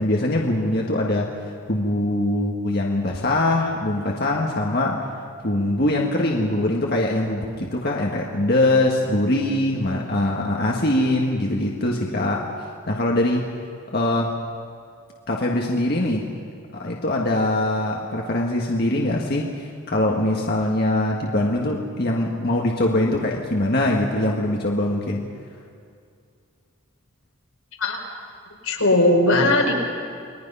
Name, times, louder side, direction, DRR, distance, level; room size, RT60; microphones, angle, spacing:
voice 1, 0.0-1.3 1.7-5.0 5.4-12.5 12.9-13.5 13.9-14.3 15.3-16.3 16.7-25.2, left 1 dB, 45° left, -1 dB, 1.7 m, -22 dB
voice 2, 28.6-29.7, left 2 dB, 90° left, -1 dB, 4.9 m, -18 dB
29.5 x 21.5 x 5.6 m, 2.3 s
head